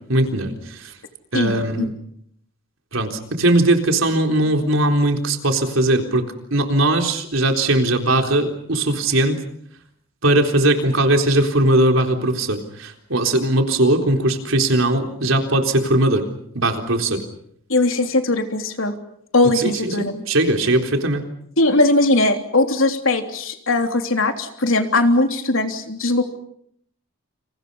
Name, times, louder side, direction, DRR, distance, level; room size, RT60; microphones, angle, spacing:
voice 1, 0.1-0.9 1.3-1.9 2.9-9.4 10.2-16.2 16.5-17.2 19.5-21.2, right 1 dB, 75° right, 4 dB, 3.9 m, -19 dB
voice 2, 1.3-1.8 17.7-18.9 19.3-20.1 21.6-26.2, left 2 dB, 75° left, 5 dB, 3.4 m, -19 dB
29.5 x 28.5 x 5.6 m, 0.70 s
head